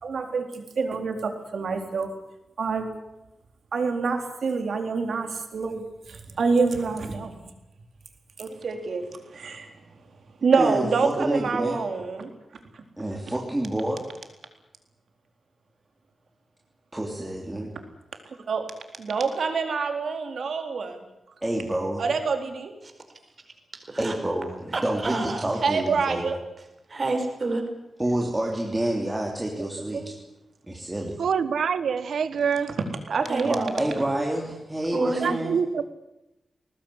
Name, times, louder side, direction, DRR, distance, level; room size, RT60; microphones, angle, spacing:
voice 1, 0.0-2.1 2.6-2.9 3.7-7.5 8.4-9.1 9.3-9.7 10.4-12.3 18.5-18.7 19.0-21.0 22.0-22.7 25.6-26.4 29.6-29.7 29.9-30.1 33.1-33.9, right 4 dB, 60° right, 5 dB, 4.0 m, -26 dB
voice 2, 10.6-11.8 13.0-14.0 16.9-17.7 21.4-22.0 24.0-26.3 28.0-30.1 30.7-31.2 33.4-35.6, right 1 dB, 10° right, -1 dB, 3.0 m, -28 dB
voice 3, 24.7-25.5 26.9-27.6 33.3-33.7 34.9-35.4, right 2 dB, 30° right, 5 dB, 4.8 m, -28 dB
voice 4, 31.2-32.7 35.2-35.8, right 6 dB, 85° right, 14 dB, 1.5 m, -25 dB
21.5 x 19.0 x 10.0 m, 0.94 s
wide cardioid pair, 175°, 0 cm